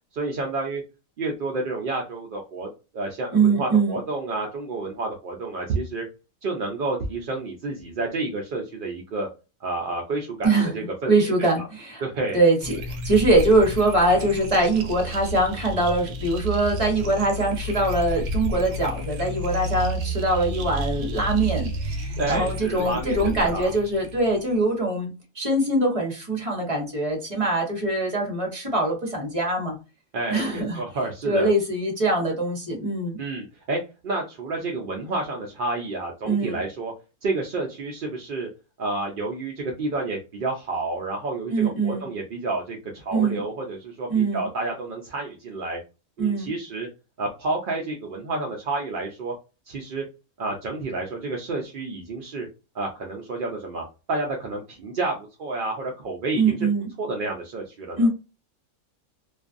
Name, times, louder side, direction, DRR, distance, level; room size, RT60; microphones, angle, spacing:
voice 1, 0.1-0.8 1.2-2.7 2.9-6.0 6.4-9.3 9.6-11.3 11.6-11.7 12.0-12.4 22.2-23.7 30.1-31.5 33.2-36.9 37.2-38.5 38.8-45.8 46.2-46.9 47.2-49.3 49.7-50.0 50.4-52.5 52.7-56.7 57.0-58.1, right 2 dB, 65° right, 0.5 m, -30 dB
voice 2, 3.3-4.0 10.4-10.7 11.1-12.0 12.3-25.1 25.3-29.8 30.3-30.8 31.2-33.2 36.3-36.6 41.5-42.1 43.1-43.4 44.1-44.5 46.2-46.5 56.4-56.9 58.0-58.1, right 2 dB, 30° right, 0.9 m, -23 dB
sound 1, 12.6-24.6, equal, 90° right, 1.0 m, -31 dB
2.5 x 2.2 x 2.5 m
omnidirectional pair, 1.5 m